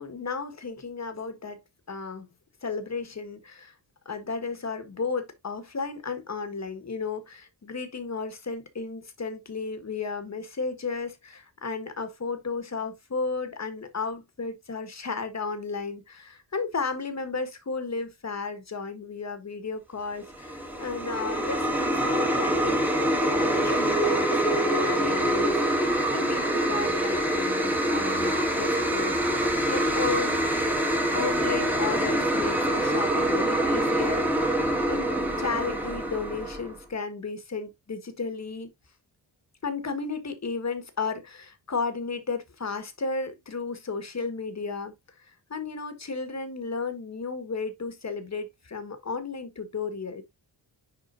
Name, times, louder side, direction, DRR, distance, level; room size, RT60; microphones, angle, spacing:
voice 1, 0.0-2.3 2.6-3.7 4.0-30.4 31.1-38.7 39.6-50.2, left 4 dB, 40° left, 1.6 m, -34 dB
sound 1, 20.3-36.7, right 1 dB, 5° right, 1.7 m, -25 dB
10.5 x 4.3 x 2.6 m
wide cardioid pair, 150°, 43 cm